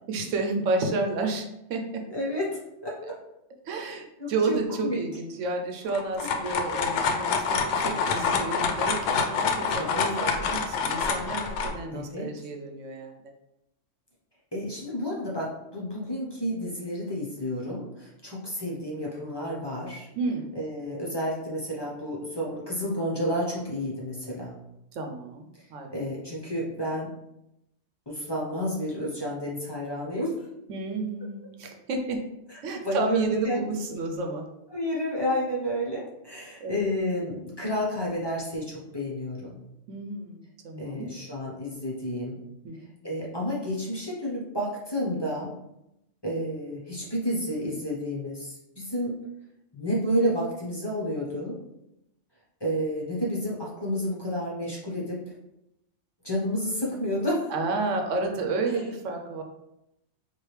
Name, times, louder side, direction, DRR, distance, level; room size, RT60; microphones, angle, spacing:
voice 1, 0.1-2.1 3.6-13.3 20.2-20.4 24.9-25.9 30.7-32.2 32.6-34.5 36.6-36.7 39.9-41.1 42.6-43.0 57.5-59.4, right 3 dB, 80° right, 4 dB, 1.0 m, -31 dB
voice 2, 2.1-3.1 4.2-5.0 9.7-10.3 11.9-12.3 14.5-20.1 20.5-24.6 25.9-27.1 28.1-30.4 32.8-33.6 34.7-39.6 40.8-42.4 43.0-45.5 46.2-49.2 49.7-51.6 52.6-55.2 56.2-57.5 58.7-58.8, equal, 25° left, -5 dB, 0.8 m, -30 dB
sound 1, 5.9-11.7, left 5 dB, 75° left, 0.9 m, -27 dB
4.7 x 2.6 x 3.2 m, 0.86 s
omnidirectional pair, 1.3 m